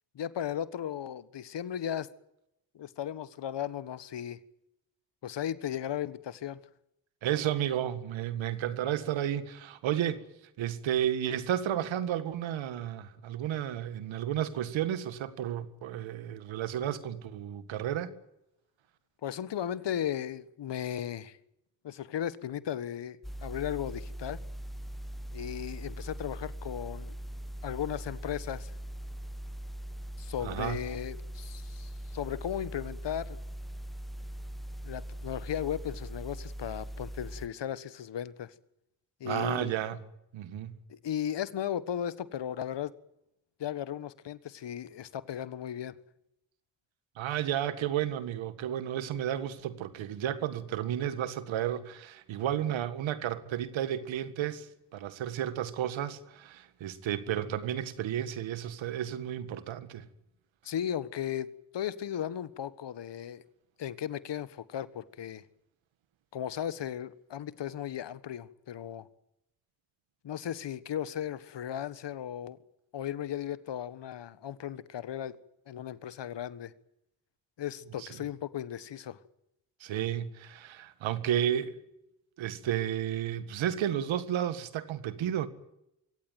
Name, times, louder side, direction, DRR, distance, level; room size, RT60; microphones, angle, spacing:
voice 1, 0.1-2.1 2.7-4.4 5.2-6.6 19.2-21.4 21.8-24.4 25.3-27.2 27.6-28.7 30.2-33.4 34.8-38.5 39.2-39.7 40.9-42.9 43.6-46.0 60.6-63.4 63.8-65.4 66.3-69.1 70.2-72.6 72.9-75.4 75.7-76.7 77.6-79.2, left 10 dB, 65° left, 1.5 m, -36 dB
voice 2, 7.2-10.2 10.6-18.1 30.4-30.8 39.2-40.0 40.3-40.8 47.2-60.0 78.0-78.1 79.8-81.8 82.4-85.5, right 10 dB, 80° right, 1.9 m, -32 dB
sound 1, 23.2-37.5, right 1 dB, ahead, 1.1 m, -41 dB
24.0 x 17.0 x 9.2 m
supercardioid pair, 50°, 46 cm